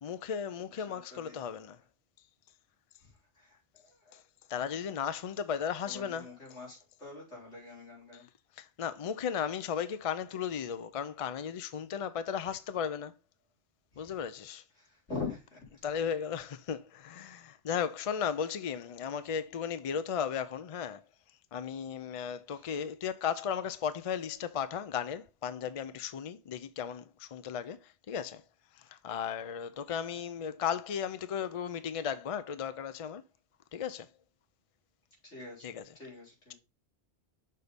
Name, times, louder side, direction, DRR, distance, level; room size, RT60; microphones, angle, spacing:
voice 1, 0.0-1.8 4.1-4.2 4.5-6.3 8.1-8.2 8.6-13.1 14.0-14.6 15.8-21.0 21.5-28.4 28.7-33.2 33.7-34.1 35.6-35.8, left 7 dB, 55° left, 0.3 m, -35 dB
voice 2, 0.9-1.5 3.0-4.2 5.8-8.3 13.9-14.1 14.8-15.9 17.2-17.4 22.5-22.7 35.2-35.6 35.9-36.5, left 4 dB, 80° left, 4.0 m, -44 dB
6.5 x 4.1 x 5.1 m
omnidirectional pair, 1.2 m